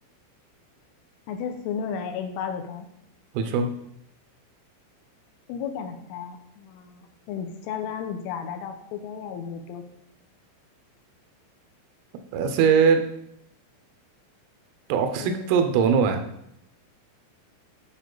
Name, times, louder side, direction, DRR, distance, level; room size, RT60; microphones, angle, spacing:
voice 1, 1.3-2.9 5.5-7.0 7.3-9.9 15.2-15.5, left 7 dB, 80° left, 5 dB, 3.1 m, -33 dB
voice 2, 3.3-3.7 12.3-13.0 14.9-16.2, right 6 dB, 85° right, 6 dB, 3.4 m, -21 dB
10.0 x 5.0 x 3.9 m, 0.76 s
omnidirectional pair, 5.9 m